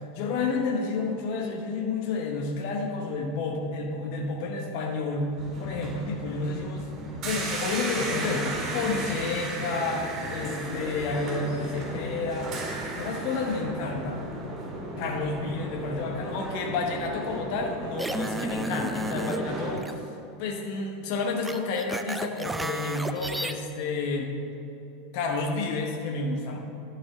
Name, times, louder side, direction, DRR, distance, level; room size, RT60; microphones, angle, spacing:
voice 1, 0.1-5.3 5.6-12.5 12.9-14.2 15.0-20.1 20.4-24.3 25.1-26.6, left 3 dB, 55° left, 2 dB, 0.9 m, -30 dB
sound 1, 5.4-19.7, right 2 dB, 45° right, 2.1 m, -35 dB
sound 2, 18.0-19.4 19.8-19.9 21.4-23.5, right 1 dB, 10° right, 0.4 m, -32 dB
11.0 x 6.1 x 4.0 m, 2.9 s
figure-of-eight pair, 85°, 0 cm